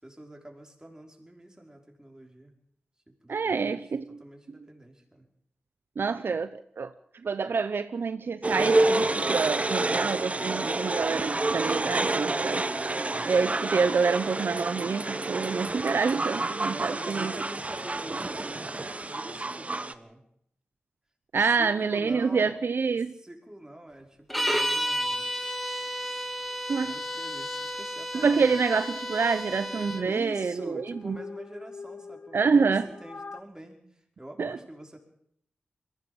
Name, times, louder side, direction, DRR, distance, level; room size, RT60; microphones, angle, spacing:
voice 1, 0.0-2.5 3.1-3.8 4.1-5.3 13.1-13.4 16.7-20.2 21.3-22.6 22.9-25.3 26.8-28.6 30.0-35.0, right 1 dB, 15° right, 5.4 m, -45 dB
voice 2, 3.3-4.2 6.0-6.9 7.2-12.7 13.2-17.3 21.3-23.1 26.7-27.0 28.1-31.2 32.3-32.9 34.4-34.6, right 5 dB, 70° right, 0.7 m, -27 dB
sound 1, 8.4-19.9, right 2 dB, 35° right, 1.3 m, -28 dB
sound 2, 24.3-30.1, equal, 5° left, 3.0 m, -32 dB
sound 3, 28.1-28.9 29.4-33.4, left 4 dB, 50° left, 1.2 m, -44 dB
21.5 x 16.5 x 7.2 m
cardioid pair, 55°, 4 cm